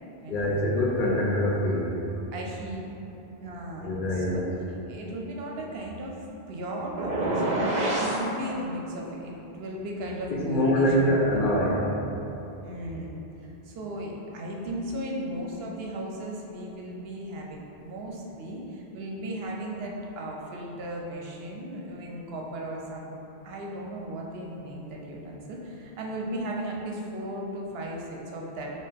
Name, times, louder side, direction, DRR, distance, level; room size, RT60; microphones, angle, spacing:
voice 1, 0.3-1.9 3.8-4.4 10.3-11.9, equal, 60° left, -3 dB, 0.7 m, -24 dB
voice 2, 2.3-2.8 3.4-4.5 4.9-12.0 12.6-23.1 23.4-28.7, right 1 dB, 75° right, -1 dB, 0.8 m, -36 dB
sound 1, 7.0-8.2, right 1 dB, 45° right, 0.9 m, -26 dB
4.7 x 2.8 x 3.4 m, 3.0 s
omnidirectional pair, 1.1 m